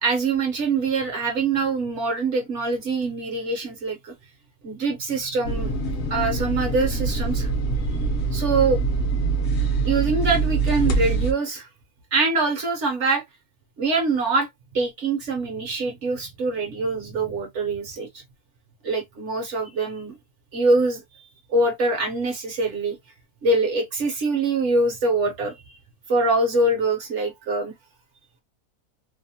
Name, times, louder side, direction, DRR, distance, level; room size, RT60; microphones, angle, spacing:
voice 1, 0.0-4.1 4.6-5.7 6.1-7.5 8.3-8.8 9.8-11.7 12.1-13.2 13.8-14.5 14.7-18.1 18.8-20.2 20.5-21.0 21.5-23.0 23.4-25.8 26.1-27.7, right 3 dB, 60° right, 0.9 m, -24 dB
sound 1, 5.4-11.3, right 4 dB, 60° left, 0.7 m, -24 dB
2.7 x 2.0 x 2.7 m
omnidirectional pair, 1.6 m